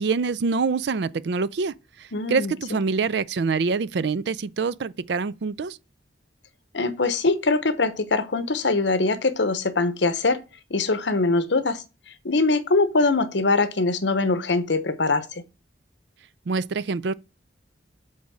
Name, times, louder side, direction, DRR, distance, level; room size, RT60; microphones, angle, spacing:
voice 1, 0.0-5.8 16.5-17.1, right 4 dB, 65° right, 0.4 m, -25 dB
voice 2, 2.1-2.5 6.7-10.4 10.7-11.8 12.2-15.4, left 3 dB, 75° left, 0.9 m, -22 dB
8.0 x 3.6 x 6.3 m
head